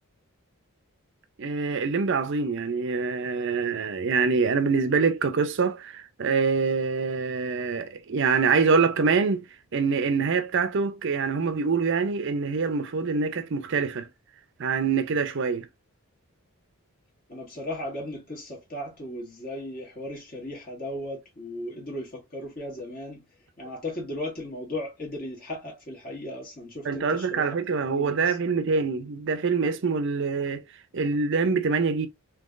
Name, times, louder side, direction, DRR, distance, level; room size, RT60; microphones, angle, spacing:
voice 1, 1.4-9.4 9.7-14.1 14.6-15.7 26.8-30.6 30.9-32.1, right 5 dB, 55° right, 0.5 m, -25 dB
voice 2, 17.3-23.2 23.6-27.6 27.9-28.4, left 1 dB, 40° left, 1.6 m, -36 dB
3.7 x 2.9 x 2.4 m
head